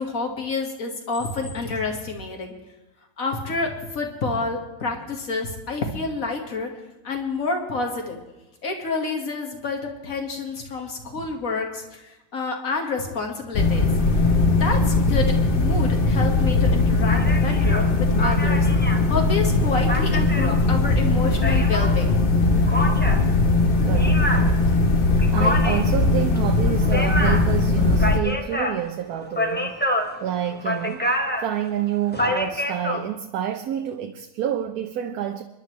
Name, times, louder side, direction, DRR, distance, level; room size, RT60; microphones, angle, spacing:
voice 1, 0.0-2.5 3.2-6.7 7.0-8.2 8.6-13.9 14.2-18.7 19.1-22.2, left 3 dB, 70° left, 2.2 m, -28 dB
sound 1, 13.5-28.2, left 3 dB, 40° left, 1.0 m, -19 dB
sound 2, 17.1-22.0 22.7-33.0, left 1 dB, 10° left, 0.9 m, -28 dB
voice 2, 23.9-24.6 25.3-29.9 30.2-35.4, right 10 dB, 85° right, 1.2 m, -28 dB
29.0 x 11.0 x 3.2 m
omnidirectional pair, 1.5 m